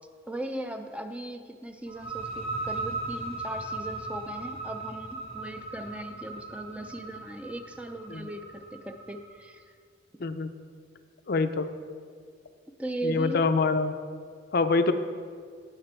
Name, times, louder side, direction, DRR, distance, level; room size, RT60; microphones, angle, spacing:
voice 1, 0.3-9.6 12.8-13.4, right 1 dB, 5° right, 6 dB, 0.5 m, -38 dB
sound 1, 1.9-9.4, right 2 dB, 30° right, 1.2 m, -38 dB
voice 2, 10.2-10.5 11.3-11.7 13.0-13.9 14.5-14.9, left 4 dB, 55° left, 9 dB, 0.5 m, -25 dB
17.0 x 6.0 x 4.4 m, 2.1 s
head